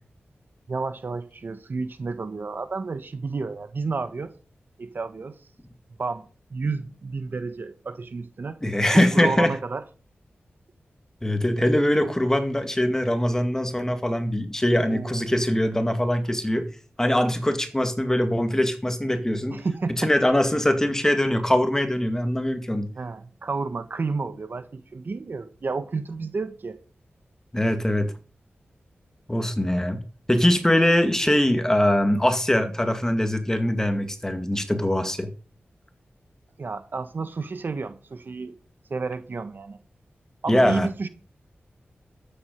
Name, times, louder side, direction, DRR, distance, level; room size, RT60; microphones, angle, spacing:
voice 1, 0.7-4.3 4.8-5.4 6.0-6.2 6.5-8.6 8.9-9.8 14.9-15.2 19.5-20.1 22.9-26.8 36.6-38.5 38.9-39.8 40.4-41.1, right 4 dB, 55° right, 1.4 m, -31 dB
voice 2, 8.6-9.5 11.2-16.7 17.0-19.6 20.0-22.9 27.5-28.1 29.3-30.0 30.3-35.3 40.5-40.9, left 1 dB, 10° left, 2.1 m, -22 dB
13.0 x 9.4 x 5.4 m
wide cardioid pair, 115°, 4 cm